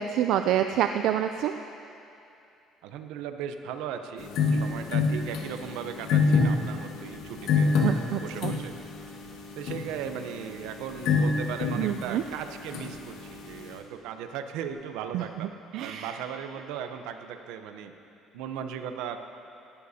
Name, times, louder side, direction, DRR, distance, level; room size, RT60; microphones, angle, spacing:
voice 1, 0.0-1.5 7.8-8.5 11.8-12.2 15.1-16.2, right 10 dB, 65° right, 8 dB, 0.3 m, -28 dB
voice 2, 2.8-7.7 8.2-8.7 9.5-15.5 15.8-17.9 18.3-19.2, right 8 dB, 90° right, 8 dB, 0.7 m, -37 dB
sound 1, 4.2-13.8, left 4 dB, 75° left, 1.4 m, -28 dB
17.0 x 14.5 x 2.8 m, 2.7 s
cardioid pair, 150°, 0 cm